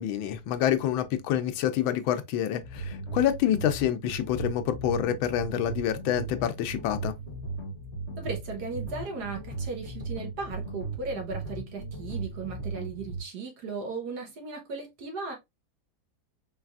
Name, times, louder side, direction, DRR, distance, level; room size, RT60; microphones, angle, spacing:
voice 1, 0.0-7.1, left 10 dB, 90° left, 1.4 m, -27 dB
sound 1, 2.6-13.2, right 3 dB, 35° left, 1.7 m, -37 dB
voice 2, 8.2-15.3, right 4 dB, 60° right, 1.4 m, -36 dB
4.0 x 3.2 x 2.3 m
omnidirectional pair, 2.1 m